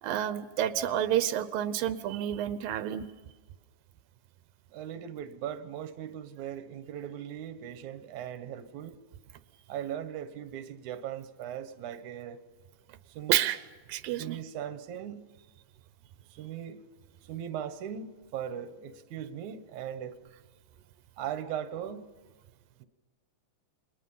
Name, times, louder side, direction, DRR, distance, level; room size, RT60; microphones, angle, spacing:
voice 1, 0.0-3.1 13.3-13.6 13.9-14.4, right 11 dB, 85° right, 2.6 m, -29 dB
voice 2, 4.7-8.9 9.7-12.4 13.1-13.3 14.2-15.2 16.4-16.8 17.3-20.2 21.2-22.0 22.8-22.9, right 9 dB, 65° right, 2.5 m, -39 dB
28.5 x 23.5 x 5.6 m
omnidirectional pair, 3.9 m